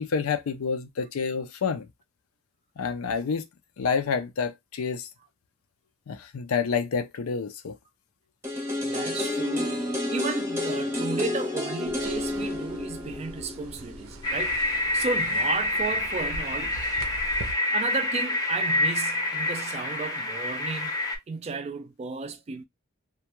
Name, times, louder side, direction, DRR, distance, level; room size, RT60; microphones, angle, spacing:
voice 1, 0.0-1.9 2.8-3.4 3.8-5.1 6.1-7.7, left 5 dB, 85° left, 0.5 m, -28 dB
sound 1, 8.4-14.3 14.7-14.8, left 2 dB, 15° right, 0.8 m, -30 dB
voice 2, 8.8-16.8 17.7-21.0 21.3-22.6, right 4 dB, 30° right, 0.3 m, -34 dB
sound 2, 11.8-17.5, right 2 dB, 85° right, 0.6 m, -42 dB
sound 3, 14.2-21.2, left 2 dB, 20° left, 0.6 m, -27 dB
2.3 x 2.2 x 2.9 m
head